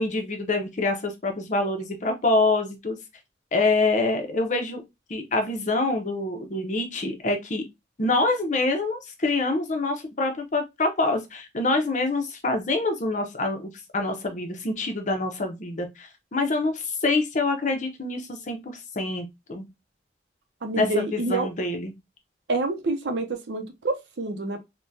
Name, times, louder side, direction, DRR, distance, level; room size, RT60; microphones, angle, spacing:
voice 1, 0.0-3.0 3.5-4.8 5.1-7.6 8.0-19.7 20.8-21.9, left 2 dB, 45° left, 0.6 m, -26 dB
voice 2, 20.6-21.5 22.5-24.6, right 3 dB, 80° right, 0.6 m, -27 dB
3.5 x 2.2 x 2.6 m
head